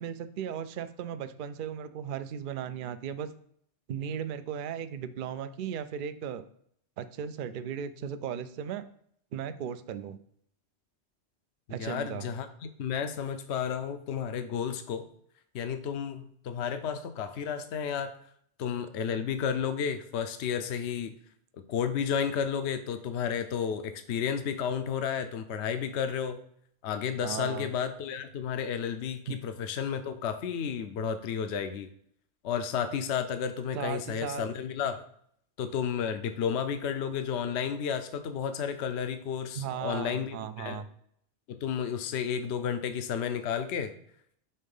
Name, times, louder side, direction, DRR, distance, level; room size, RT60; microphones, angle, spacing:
voice 1, 0.0-3.3 3.9-6.5 7.0-8.8 9.3-10.2 11.7-12.3 27.2-27.7 29.3-29.4 33.7-34.5 39.6-40.9, right 8 dB, 60° right, 12 dB, 0.6 m, -36 dB
voice 2, 11.7-15.1 15.5-18.1 18.6-21.1 21.7-26.4 26.8-31.9 32.4-35.0 35.6-40.8 41.5-43.9, left 7 dB, 75° left, 9 dB, 0.9 m, -32 dB
5.4 x 3.7 x 5.3 m, 0.66 s
omnidirectional pair, 1.2 m